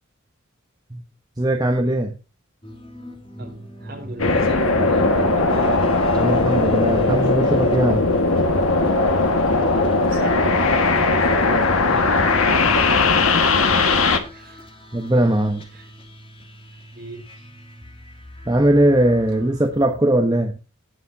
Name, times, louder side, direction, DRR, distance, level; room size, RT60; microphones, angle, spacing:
voice 1, 1.4-2.1 6.2-8.0 14.9-15.6 18.5-20.5, right 1 dB, 20° right, 1.1 m, -19 dB
sound 1, 2.6-20.0, equal, 25° left, 2.9 m, -41 dB
voice 2, 3.4-5.8 9.5-13.5 14.3-14.7 15.7-15.9 16.9-17.6, right 1 dB, 45° right, 4.5 m, -36 dB
sound 2, 4.2-14.2, left 3 dB, 80° left, 1.7 m, -18 dB
18.0 x 7.0 x 2.8 m
head